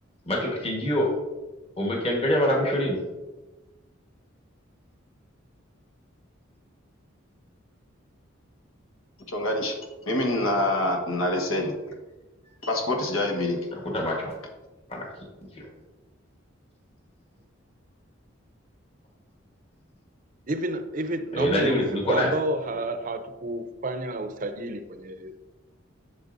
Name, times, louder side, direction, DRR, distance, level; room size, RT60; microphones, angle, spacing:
voice 1, 0.3-1.1 1.8-3.0 13.7-14.3 14.9-15.1 15.5-15.7 21.3-22.3, left 1 dB, 30° left, 1.2 m, -25 dB
voice 2, 9.3-9.8 10.0-11.7 12.6-13.6, left 1 dB, 90° left, 1.3 m, -25 dB
voice 3, 20.5-25.5, right 2 dB, 40° right, 0.5 m, -30 dB
8.0 x 6.8 x 2.6 m
head